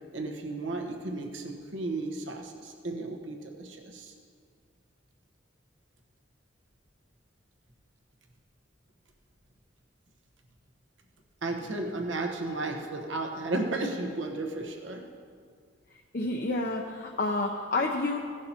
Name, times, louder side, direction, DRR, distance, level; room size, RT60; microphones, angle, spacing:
voice 1, 0.1-4.1 11.4-15.0, right 2 dB, 80° right, 2 dB, 1.2 m, -34 dB
voice 2, 15.9-18.2, left 2 dB, 50° left, 0 dB, 0.7 m, -29 dB
16.0 x 11.0 x 2.9 m, 2.1 s
head